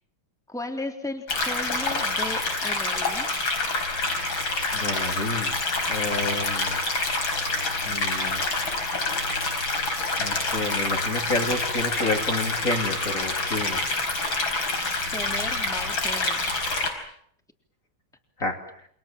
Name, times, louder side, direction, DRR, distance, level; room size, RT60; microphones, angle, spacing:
voice 1, 0.5-3.3 15.1-16.4, left 2 dB, ahead, 3 dB, 3.2 m, -35 dB
sound 1, 1.3-16.9, left 3 dB, 80° left, 5.4 m, -27 dB
voice 2, 4.7-5.6 5.9-6.8 7.8-8.5 10.2-13.8 18.4-18.6, left 2 dB, 40° left, 3 dB, 3.5 m, -30 dB
29.0 x 25.5 x 7.5 m, 0.67 s
omnidirectional pair, 2.1 m